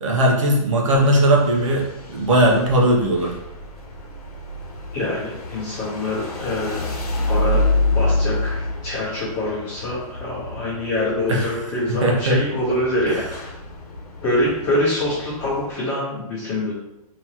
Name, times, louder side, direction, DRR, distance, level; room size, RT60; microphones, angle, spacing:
voice 1, 0.0-3.3 11.3-11.4 12.0-12.4 13.1-13.2, right 1 dB, 60° right, -1 dB, 0.9 m, -18 dB
sound 1, 0.9-15.7, left 2 dB, 85° left, 1.0 m, -28 dB
voice 2, 4.9-7.0 7.2-7.6 7.9-13.2 14.2-16.7, left 1 dB, 15° left, -8 dB, 1.1 m, -25 dB
3.6 x 2.9 x 2.9 m, 0.90 s
hypercardioid pair, 180°, 19 cm